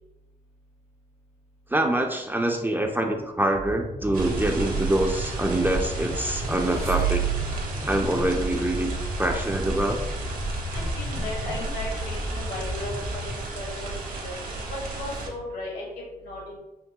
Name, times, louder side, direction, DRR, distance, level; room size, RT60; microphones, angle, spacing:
voice 1, 1.7-7.3 7.8-8.9 9.2-10.0, right 1 dB, 10° right, 3 dB, 0.3 m, -25 dB
sound 1, 3.4-13.4, left 1 dB, 55° left, 0.7 m, -35 dB
sound 2, 4.1-15.3, right 3 dB, 55° right, 0.8 m, -32 dB
sound 3, 6.0-7.8, right 12 dB, 70° right, 1.1 m, -30 dB
voice 2, 10.7-13.2 13.5-14.3 14.7-15.8 16.2-16.6, left 1 dB, 80° left, -3 dB, 1.4 m, -36 dB
3.7 x 2.0 x 2.7 m, 0.98 s
cardioid pair, 65°, 17 cm